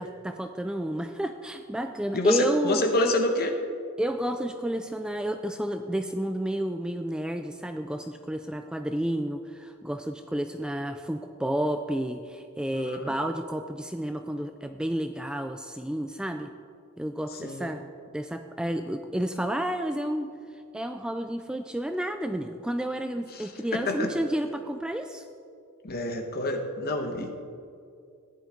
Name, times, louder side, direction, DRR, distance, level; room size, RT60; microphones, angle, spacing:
voice 1, 0.0-3.1 4.0-16.5 17.0-17.9 18.1-20.3 20.7-25.2, right 1 dB, 5° right, 6 dB, 0.3 m, -31 dB
voice 2, 2.1-3.5 12.7-13.1 17.3-17.7 23.3-24.1 25.8-27.3, left 2 dB, 45° left, 4 dB, 1.2 m, -28 dB
14.5 x 11.0 x 3.8 m, 2.4 s
head